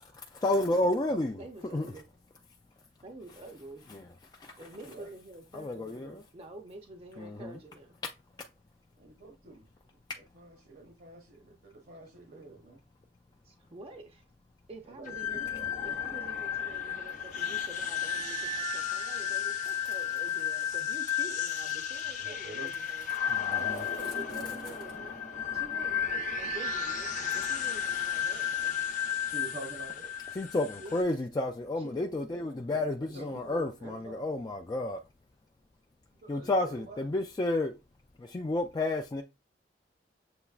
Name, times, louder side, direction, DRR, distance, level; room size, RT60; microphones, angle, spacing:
voice 1, 0.0-1.4 1.7-1.9 3.9-4.1 4.4-4.7 5.5-6.2 7.2-7.6 23.3-23.8 30.3-35.0 36.3-37.7 38.2-39.2, left 2 dB, 25° left, 0.4 m, -31 dB
voice 2, 1.4-2.0 3.0-3.8 4.6-8.0 13.4-14.2 14.7-15.4 15.8-28.8 30.8-31.1 31.8-31.9 33.1-33.2, right 2 dB, 35° right, 0.6 m, -48 dB
voice 3, 4.5-5.1 9.0-9.6 10.3-12.8 14.9-15.2 22.0-22.7 29.2-30.1 33.1-34.3 36.2-37.0, right 2 dB, 55° right, 0.9 m, -47 dB
sound 1, 15.0-31.0, left 7 dB, 50° left, 0.8 m, -33 dB
7.0 x 3.0 x 2.4 m
head